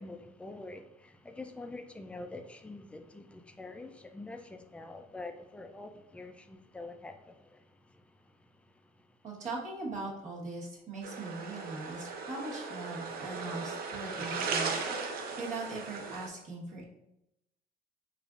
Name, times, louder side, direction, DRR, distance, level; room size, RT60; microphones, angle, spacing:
voice 1, 0.0-7.6, left 2 dB, 5° left, 6 dB, 0.3 m, -45 dB
voice 2, 9.2-14.8 15.4-16.8, right 3 dB, 45° right, -4 dB, 1.3 m, -40 dB
sound 1, 11.0-16.3, right 4 dB, 60° right, 0.6 m, -37 dB
4.9 x 2.5 x 2.4 m, 0.87 s
cardioid pair, 110°, 17 cm